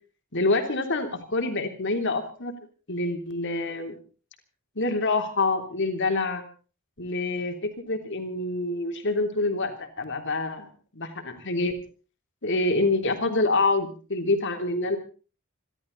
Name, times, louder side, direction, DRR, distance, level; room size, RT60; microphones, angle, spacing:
voice 1, 0.3-2.5 2.9-3.9 4.7-6.4 7.0-10.7 10.9-11.7 12.4-15.0, left 2 dB, 55° left, 5 dB, 3.3 m, -26 dB
27.5 x 12.5 x 4.1 m, 0.38 s
head